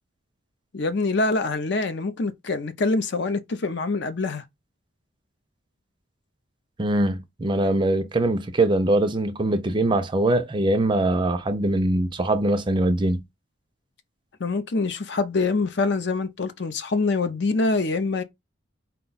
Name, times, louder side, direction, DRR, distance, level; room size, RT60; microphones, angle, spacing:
voice 1, 0.7-4.4 14.4-18.2, left 3 dB, 60° left, 0.6 m, -25 dB
voice 2, 6.8-13.2, right 1 dB, 25° right, 0.5 m, -22 dB
4.4 x 2.3 x 3.9 m
head